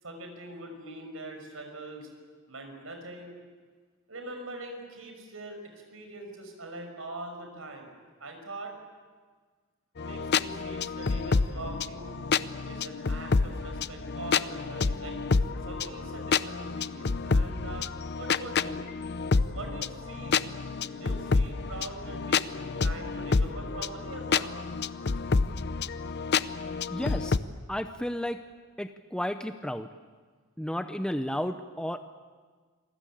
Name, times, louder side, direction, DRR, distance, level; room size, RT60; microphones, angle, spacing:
voice 1, 0.0-2.1 2.5-3.4 4.1-7.9 8.2-8.7 10.0-12.1 12.6-15.1 15.6-18.8 19.5-20.4 20.9-24.5, right 2 dB, 80° right, 4 dB, 6.0 m, -42 dB
sound 1, 10.0-27.4, left 4 dB, 55° left, 0.7 m, -29 dB
voice 2, 26.9-27.4 27.7-28.4 28.8-29.9 30.6-32.0, equal, 5° left, 8 dB, 0.7 m, -32 dB
28.0 x 20.5 x 8.6 m, 1.5 s
head